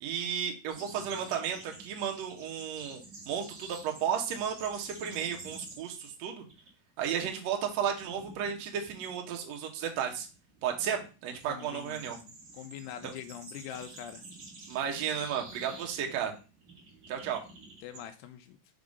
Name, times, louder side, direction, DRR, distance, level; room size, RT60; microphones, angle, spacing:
voice 1, 0.0-6.4 7.0-10.3 10.6-12.2 13.0-13.1 14.7-16.3 17.1-17.4, right 8 dB, 85° right, 2 dB, 1.5 m, -33 dB
sound 1, 0.7-6.1 6.3-6.7 7.0-18.1, right 2 dB, 50° right, 1.2 m, -50 dB
voice 2, 11.5-14.2 17.8-18.6, left 10 dB, 85° left, 7 dB, 2.7 m, -44 dB
5.9 x 3.6 x 5.2 m, 0.33 s
omnidirectional pair, 4.7 m